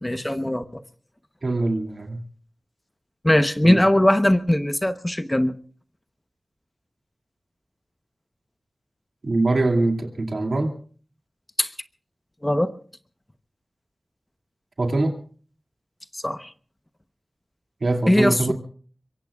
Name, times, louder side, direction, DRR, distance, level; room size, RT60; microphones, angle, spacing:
voice 1, 0.0-0.8 3.2-5.5 11.6-11.7 12.4-12.7 16.1-16.5 18.1-18.5, left 1 dB, 15° left, 10 dB, 0.9 m, -20 dB
voice 2, 1.4-2.2 3.6-3.8 9.2-10.7 14.8-15.1 17.8-18.5, right 2 dB, 65° right, 3 dB, 2.5 m, -23 dB
24.0 x 23.0 x 2.4 m, 0.42 s
wide cardioid pair, 60°, 0 cm